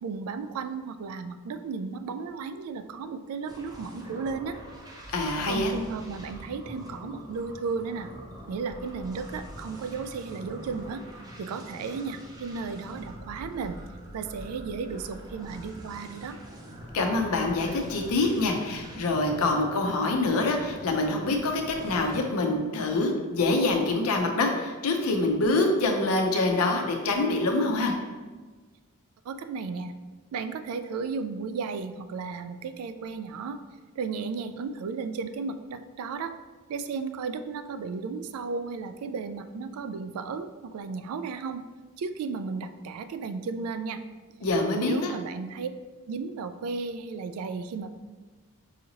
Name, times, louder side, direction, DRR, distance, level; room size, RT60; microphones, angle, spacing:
voice 1, 0.0-4.6 5.5-8.1 8.5-11.0 11.4-13.8 14.1-16.4 29.3-29.9 30.3-33.6 34.0-36.3 36.7-41.6 42.0-44.0 44.7-45.7 46.1-47.9, right 5 dB, 80° right, 11 dB, 0.3 m, -34 dB
sound 1, 3.5-22.2, equal, 15° right, 0.4 m, -44 dB
voice 2, 5.1-5.7 16.9-27.9 44.4-45.1, left 2 dB, 85° left, 3 dB, 0.6 m, -25 dB
4.8 x 2.7 x 2.8 m, 1.3 s
head